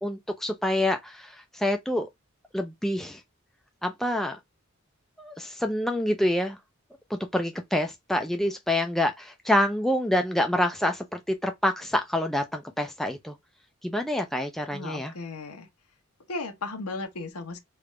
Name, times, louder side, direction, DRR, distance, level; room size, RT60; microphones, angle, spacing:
voice 1, 0.0-2.1 2.5-3.2 3.8-4.4 5.2-6.6 7.1-13.3 13.8-15.1, left 1 dB, ahead, 0.3 m, -27 dB
voice 2, 14.7-15.7 16.3-17.6, left 3 dB, 85° left, 0.9 m, -35 dB
3.4 x 2.4 x 3.1 m
head